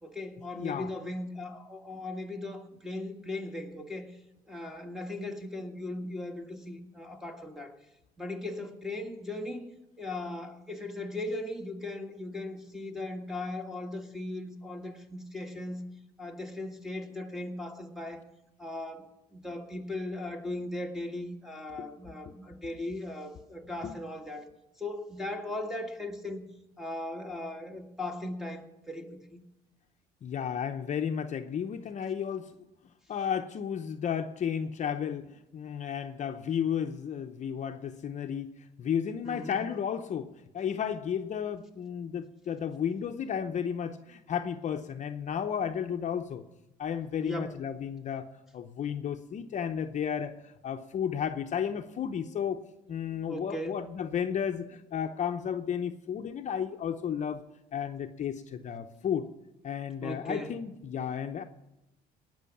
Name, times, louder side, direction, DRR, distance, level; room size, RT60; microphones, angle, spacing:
voice 1, 0.0-4.1 4.5-7.7 8.2-9.7 10.0-15.8 16.2-18.2 18.6-24.5 24.8-26.4 26.8-29.4 39.2-39.7 47.2-47.5 53.3-53.8 60.0-60.6, left 1 dB, ahead, 4 dB, 1.7 m, -38 dB
voice 2, 0.5-0.9 21.8-21.9 23.8-24.0 30.2-32.5 33.1-38.5 38.8-40.3 40.5-46.4 46.8-48.3 48.5-50.3 50.6-52.6 52.9-57.4 57.7-59.3 59.6-61.4, left 8 dB, 45° left, 6 dB, 0.7 m, -33 dB
18.5 x 6.3 x 7.1 m, 0.94 s
cardioid pair, 110°, 17 cm